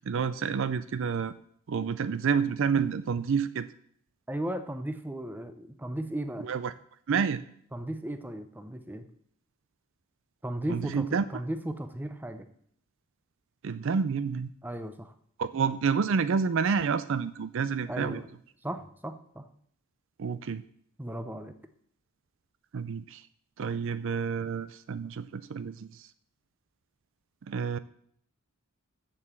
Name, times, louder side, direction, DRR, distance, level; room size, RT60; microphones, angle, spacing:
voice 1, 0.0-1.3 1.7-3.7 6.4-6.7 7.1-7.4 10.7-11.2 13.6-14.5 15.4-18.2 20.2-20.6 22.7-23.2 23.6-25.9 27.5-27.8, right 6 dB, 60° right, 14 dB, 0.4 m, -29 dB
voice 2, 4.3-6.5 7.7-9.1 10.4-12.5 14.6-15.1 17.9-18.2 18.6-19.5 21.0-21.5, right 1 dB, 10° right, 9 dB, 0.6 m, -36 dB
7.0 x 6.9 x 7.4 m, 0.65 s
head